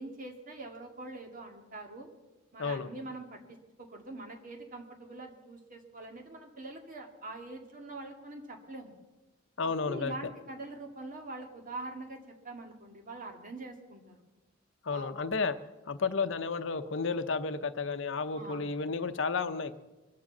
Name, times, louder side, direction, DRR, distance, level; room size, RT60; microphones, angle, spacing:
voice 1, 0.0-2.1 2.5-8.9 9.6-14.2 14.9-15.1 18.3-18.6, right 2 dB, 45° right, 3 dB, 2.1 m, -44 dB
voice 2, 9.6-10.3 14.8-15.6 15.9-19.7, left 4 dB, 65° left, 10 dB, 0.7 m, -32 dB
23.0 x 7.7 x 7.2 m, 1.1 s
head